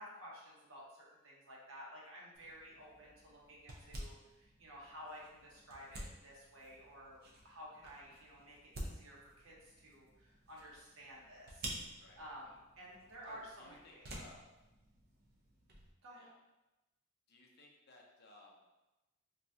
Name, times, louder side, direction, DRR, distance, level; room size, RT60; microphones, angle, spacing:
voice 1, 0.0-7.2 7.4-14.1 16.0-16.3, equal, 65° right, -4 dB, 0.9 m, -53 dB
sound 1, 2.3-15.9, right 1 dB, 50° right, 0.6 m, -51 dB
voice 2, 13.2-14.4 16.2-16.4 17.3-18.6, left 2 dB, 50° left, -1 dB, 0.6 m, -60 dB
3.8 x 2.3 x 2.7 m, 1.0 s
head